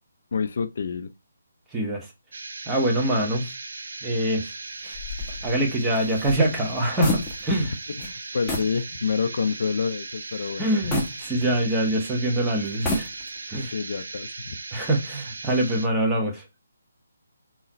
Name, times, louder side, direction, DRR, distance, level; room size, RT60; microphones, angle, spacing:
voice 1, 0.3-1.1 8.0-10.8 13.7-14.6, left 5 dB, 55° left, 0.5 m, -28 dB
voice 2, 1.7-2.1 2.7-3.5 4.0-4.5 4.8-5.0 5.4-7.7 10.6-13.1 13.5-13.7 14.7-16.4, right 1 dB, 10° right, 1.0 m, -24 dB
sound 1, 2.3-15.9, right 3 dB, 60° right, 0.7 m, -38 dB
sound 2, 4.9-7.7 8.0-8.1 8.5-8.8 9.3-9.4 10.9-11.9 12.7-13.5, left 2 dB, 10° left, 1.0 m, -31 dB
3.8 x 3.0 x 4.2 m
figure-of-eight pair, 145°, 0 cm